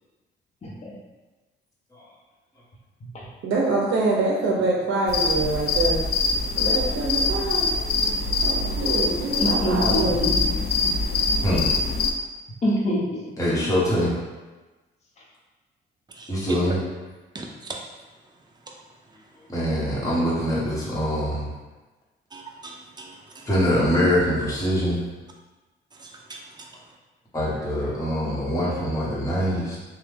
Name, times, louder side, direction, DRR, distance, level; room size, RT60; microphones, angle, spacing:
voice 1, 0.6-0.9 9.4-10.6 11.5-11.6 12.6-13.3, equal, 35° left, -5 dB, 0.8 m, -26 dB
voice 2, 3.4-6.1 6.6-7.7 8.4-10.2 27.6-27.7, right 2 dB, 70° right, -2 dB, 0.6 m, -25 dB
sound 1, 5.1-12.1, left 3 dB, 55° left, 0.4 m, -24 dB
voice 3, 13.4-14.1 16.3-16.8 19.5-21.5 23.5-25.0 27.3-29.8, equal, 15° left, -7 dB, 1.1 m, -23 dB
voice 4, 17.3-17.8 22.3-23.4 26.0-26.4, right 3 dB, 20° right, 0 dB, 0.5 m, -40 dB
3.1 x 2.2 x 3.4 m, 1.2 s
cardioid pair, 90°, 20 cm